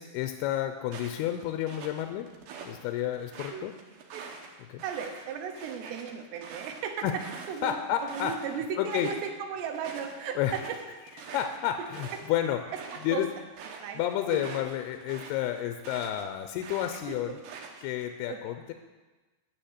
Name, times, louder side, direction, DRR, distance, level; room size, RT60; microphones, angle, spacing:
voice 1, 0.0-2.3 2.6-3.7 4.7-4.8 7.0-7.1 7.6-8.3 8.8-9.1 10.4-10.5 11.2-12.6 13.0-13.3 14.0-17.3 17.8-18.7, left 11 dB, 85° left, 7 dB, 2.5 m, -30 dB
sound 1, 0.9-2.8 3.1-8.5 8.8-9.3 9.6-16.2 16.6-18.0, right 5 dB, 70° right, 3.0 m, -45 dB
voice 2, 4.8-7.2 7.5-7.8 8.0-10.8 11.3-11.4 12.9-13.3 13.8-14.0 14.3-14.4 17.1-17.4 18.3-18.6, right 7 dB, 90° right, 4 dB, 3.2 m, -36 dB
10.0 x 6.9 x 8.1 m, 1.2 s
omnidirectional pair, 4.8 m